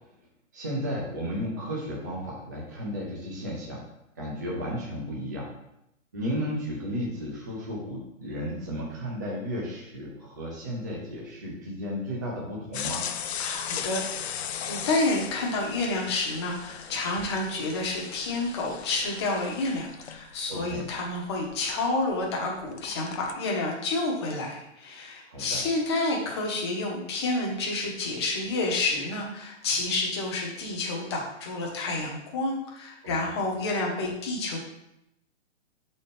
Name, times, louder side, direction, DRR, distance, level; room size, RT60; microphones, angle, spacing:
voice 1, 0.5-3.8 4.2-5.5 6.1-13.0 20.5-20.8 25.3-25.6 33.0-33.1, equal, 15° right, -4 dB, 0.5 m, -33 dB
sound 1, 12.7-22.3 22.6-23.3, left 8 dB, 55° left, 0.5 m, -37 dB
voice 2, 13.4-34.6, left 2 dB, 20° left, -1 dB, 0.9 m, -29 dB
6.6 x 4.2 x 3.4 m, 0.84 s
hypercardioid pair, 170°, 38 cm